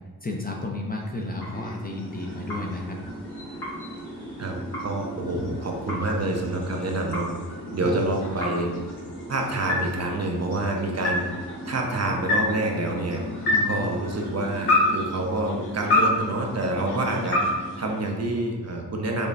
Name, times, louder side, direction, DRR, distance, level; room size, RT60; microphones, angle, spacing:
voice 1, 0.2-3.0 5.3-5.5 7.8-8.0 11.0-11.1 13.5-13.8 16.9-17.0, left 2 dB, 25° left, 0 dB, 0.5 m, -32 dB
sound 1, 0.8-18.6, left 1 dB, 70° left, 1.0 m, -30 dB
voice 2, 4.8-7.3 7.7-8.7 9.3-11.2 11.7-13.2 13.6-19.3, right 2 dB, 40° right, 1 dB, 0.5 m, -27 dB
5.1 x 2.2 x 2.5 m, 1.3 s
wide cardioid pair, 75°, 40 cm